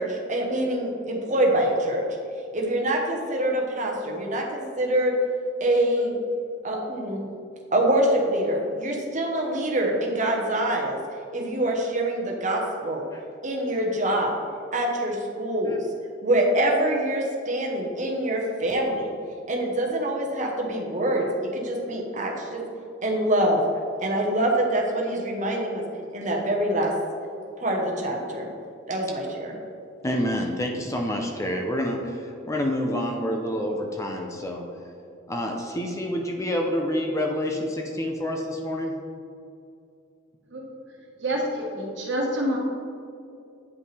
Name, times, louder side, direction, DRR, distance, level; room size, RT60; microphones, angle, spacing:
voice 1, 0.0-2.0 2.5-5.1 5.6-6.2 6.6-7.3 7.7-11.0 11.3-13.0 13.4-14.4 14.7-15.9 16.2-19.1 19.5-22.6 23.0-23.6 24.0-25.8 26.1-26.9 27.6-28.5 28.9-29.5, right 1 dB, 40° right, 0 dB, 1.0 m, -25 dB
voice 2, 30.0-34.6 35.3-39.0, equal, 15° left, 2 dB, 0.5 m, -28 dB
voice 3, 41.2-42.6, equal, 60° right, -2 dB, 1.4 m, -27 dB
9.2 x 5.3 x 3.3 m, 2.5 s
head